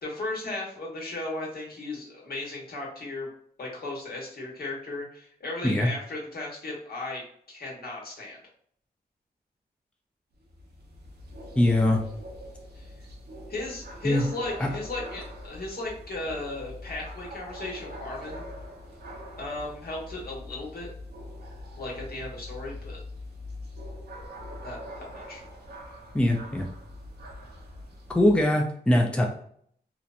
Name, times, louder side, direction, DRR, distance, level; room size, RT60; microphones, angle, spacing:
voice 1, 0.0-3.3 3.6-8.4 12.7-12.9 13.5-18.4 19.4-20.9 21.8-23.0 24.6-25.4, left 2 dB, 60° left, -2 dB, 1.0 m, -36 dB
sound 1, 10.3-28.4, left 1 dB, 65° right, 0.8 m, -43 dB
voice 2, 11.6-12.0 14.0-14.2 14.6-14.7 26.1-26.7 28.1-29.3, left 1 dB, 5° left, 1 dB, 0.5 m, -22 dB
2.9 x 2.1 x 2.5 m, 0.63 s
cardioid pair, 55°, 17 cm